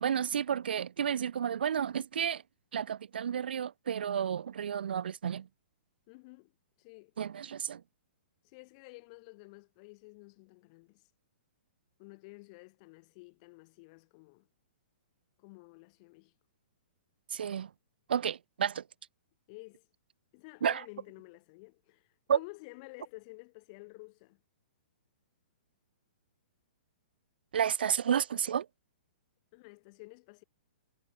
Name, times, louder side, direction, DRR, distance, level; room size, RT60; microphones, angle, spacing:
voice 1, 0.0-2.4 2.7-5.5 7.2-7.8 17.3-17.7 18.1-18.8 20.6-20.8 22.3-22.4 27.5-28.7, right 8 dB, 70° right, 0.5 m, -31 dB
voice 2, 6.1-6.5 6.8-7.1 8.4-11.0 12.0-14.5 15.4-16.3 19.5-19.9 20.3-24.4 29.5-30.4, left 27 dB, 40° left, 4.5 m, -52 dB
hypercardioid pair, 125°, 6 cm